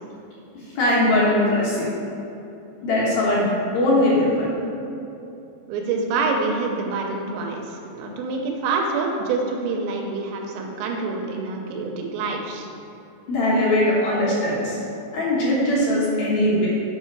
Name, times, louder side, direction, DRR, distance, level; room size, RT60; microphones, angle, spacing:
voice 1, 0.8-1.9 2.8-3.5 3.7-4.5 13.3-14.8 15.1-16.7, left 1 dB, 65° left, -7 dB, 2.7 m, -20 dB
voice 2, 5.7-12.7, right 3 dB, 80° right, 1 dB, 2.9 m, -26 dB
8.6 x 5.5 x 4.8 m, 2.8 s
omnidirectional pair, 5.4 m